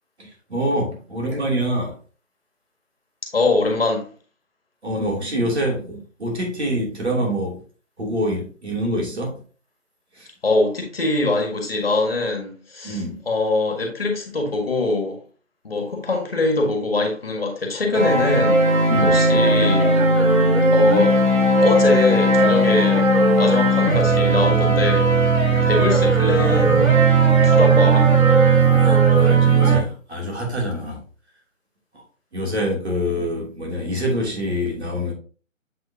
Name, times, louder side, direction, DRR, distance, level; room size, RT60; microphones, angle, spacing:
voice 1, 0.2-2.0 4.8-7.6 8.0-9.4 10.1-10.3 12.8-13.2 18.9-19.2 28.7-31.0 32.3-35.1, equal, 55° right, 3.0 m, -25 dB
voice 2, 3.2-4.1 10.4-15.2 15.6-18.6 19.0-19.9 20.7-21.2 21.6-23.1 23.4-25.1 25.7-27.0 27.4-28.1, left 3 dB, 45° left, 1.7 m, -22 dB
sound 1, 17.9-29.8, right 3 dB, 85° right, 2.6 m, -16 dB
7.7 x 4.8 x 2.8 m
figure-of-eight pair, 175°, 40 cm